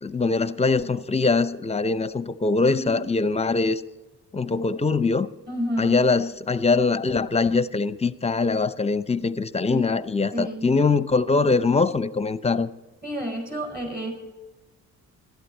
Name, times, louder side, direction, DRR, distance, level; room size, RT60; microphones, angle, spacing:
voice 1, 0.0-3.8 4.3-5.3 5.8-12.7, left 4 dB, 20° left, 0.6 m, -22 dB
voice 2, 2.7-3.0 5.5-6.0 9.7-10.0 10.3-10.7 13.0-14.1, equal, 30° right, 5.2 m, -30 dB
16.5 x 12.0 x 4.4 m
cardioid pair, 90°, 30 cm